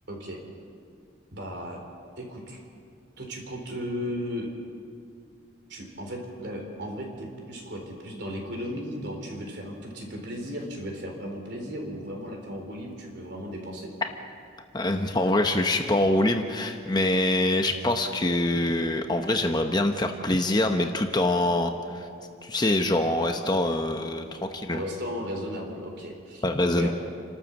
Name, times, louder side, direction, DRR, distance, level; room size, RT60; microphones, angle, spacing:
voice 1, 0.1-0.4 1.3-1.8 2.2-2.6 3.2-4.5 5.7-13.9 24.7-26.9, equal, 55° right, 2 dB, 4.0 m, -35 dB
voice 2, 14.7-22.1 22.4-24.8 26.4-26.9, left 1 dB, 20° left, 5 dB, 0.9 m, -24 dB
29.5 x 13.0 x 7.2 m, 2.4 s
head